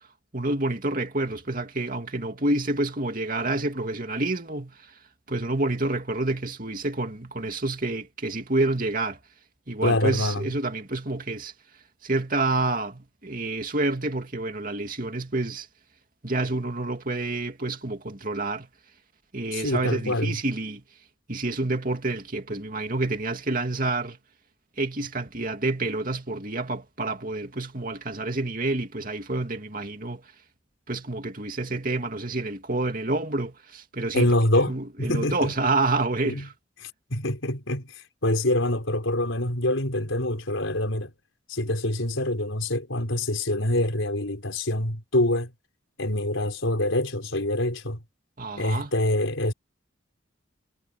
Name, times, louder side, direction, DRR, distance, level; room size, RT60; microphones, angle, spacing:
voice 1, 0.3-4.7 5.3-9.2 9.7-11.5 12.0-15.7 16.2-18.7 19.3-20.8 21.3-24.2 24.8-30.2 30.9-34.3 34.7-36.5 48.4-48.9, right 2 dB, 45° right, 2.7 m, -28 dB
voice 2, 9.8-10.4 19.5-20.4 34.1-34.7 35.0-35.5 36.2-36.5 36.8-37.9 38.2-41.1 41.5-45.5 46.0-48.0 48.6-49.5, left 1 dB, 80° left, 4.6 m, -25 dB
head